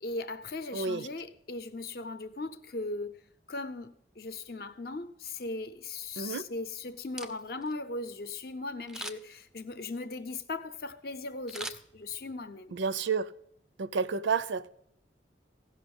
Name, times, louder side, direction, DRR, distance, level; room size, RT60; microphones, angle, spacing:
voice 1, 0.0-3.2 3.5-12.7, left 3 dB, 55° left, 0.6 m, -38 dB
voice 2, 0.7-1.1 6.2-6.4 12.7-13.3 13.8-14.7, right 5 dB, 85° right, 0.5 m, -30 dB
Camera, 7.0-7.7 8.9-9.4 11.5-12.4 12.8-12.9, right 1 dB, 5° right, 0.3 m, -42 dB
16.0 x 5.5 x 5.3 m
head